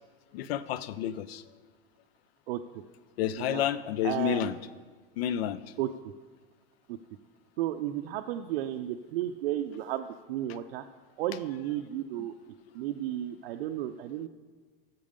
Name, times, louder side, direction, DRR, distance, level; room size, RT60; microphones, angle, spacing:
voice 1, 0.3-1.4 3.2-4.6 5.2-5.6, left 11 dB, 85° left, 16 dB, 0.5 m, -30 dB
voice 2, 4.0-4.5 5.8-6.1 6.9-7.0 7.6-10.8 11.2-12.3 12.7-14.3, right 12 dB, 75° right, 5 dB, 0.5 m, -33 dB
7.4 x 5.3 x 5.1 m, 1.5 s
supercardioid pair, 150°, 30 cm